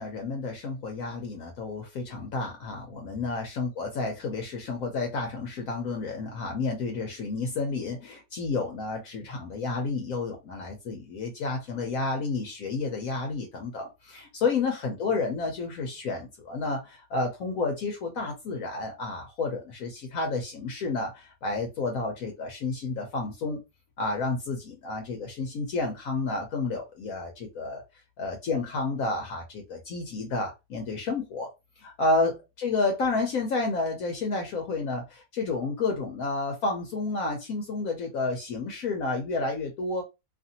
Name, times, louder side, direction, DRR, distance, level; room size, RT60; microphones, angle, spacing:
voice 1, 0.0-23.6 24.0-27.8 28.2-31.5 31.8-40.0, left 3 dB, 70° left, 1.0 m, -30 dB
2.8 x 2.5 x 2.7 m
omnidirectional pair, 1.7 m